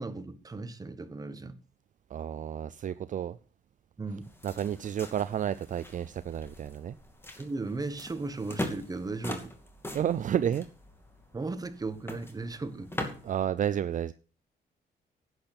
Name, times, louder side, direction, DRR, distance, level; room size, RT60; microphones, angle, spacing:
voice 1, 0.0-1.6 4.0-4.2 7.4-9.5 11.3-12.9, right 3 dB, 20° right, 1.3 m, -36 dB
voice 2, 2.1-3.4 4.4-7.0 9.9-10.7 13.2-14.1, right 9 dB, 50° right, 0.5 m, -31 dB
sound 1, 4.2-13.4, left 1 dB, 15° left, 2.5 m, -42 dB
11.5 x 8.9 x 5.9 m
cardioid pair, 120°, 17 cm